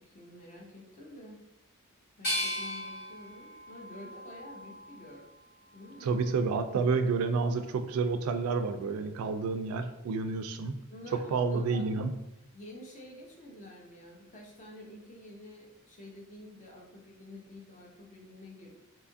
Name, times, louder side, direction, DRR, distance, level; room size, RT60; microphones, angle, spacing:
voice 1, 0.0-1.4 2.2-5.2 5.7-6.2 10.9-11.9 12.5-18.8, left 1 dB, 35° left, -1 dB, 0.6 m, -49 dB
sound 1, 2.2-5.2 5.7-6.5, left 1 dB, 50° left, 1.0 m, -38 dB
voice 2, 6.0-10.8 11.3-12.1, right 4 dB, 80° right, 10 dB, 0.3 m, -29 dB
2.7 x 2.4 x 2.5 m, 0.90 s
head